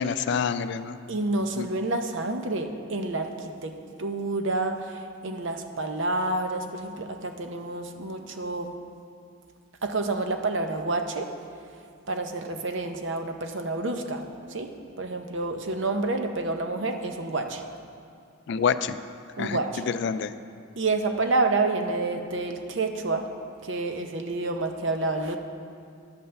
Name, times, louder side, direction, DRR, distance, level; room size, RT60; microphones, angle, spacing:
voice 1, 0.0-1.0 1.6-1.7 18.5-19.0 19.4-19.6 19.9-20.3, left 6 dB, 55° left, 12 dB, 0.3 m, -27 dB
voice 2, 1.1-8.7 9.8-11.3 12.1-14.2 14.5-14.7 15.0-17.6 19.4-19.8 20.8-23.3 23.6-25.4, right 2 dB, 60° right, 5 dB, 0.7 m, -29 dB
10.5 x 5.5 x 6.7 m, 2.4 s
head